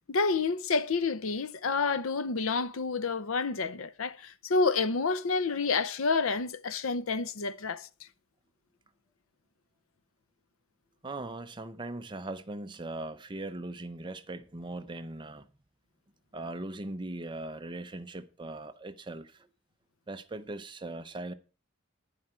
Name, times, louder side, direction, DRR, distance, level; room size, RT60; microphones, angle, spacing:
voice 1, 0.1-7.9, left 4 dB, 80° left, 0.7 m, -29 dB
voice 2, 11.0-15.5 16.3-19.5 20.1-21.3, right 2 dB, 25° right, 0.7 m, -39 dB
11.5 x 9.9 x 4.4 m
head